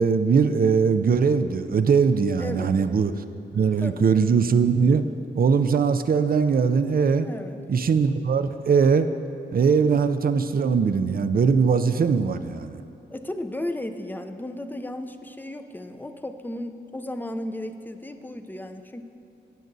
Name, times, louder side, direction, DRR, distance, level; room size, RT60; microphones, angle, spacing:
voice 1, 0.0-3.1 3.5-5.0 5.3-7.3 7.7-9.1 9.5-12.8, right 5 dB, 50° right, 10 dB, 0.5 m, -21 dB
voice 2, 2.4-2.8 3.8-4.1 7.2-7.6 13.1-19.0, left 1 dB, 10° left, 7 dB, 0.5 m, -34 dB
18.5 x 7.5 x 2.7 m, 2.6 s
cardioid pair, 80°, 19 cm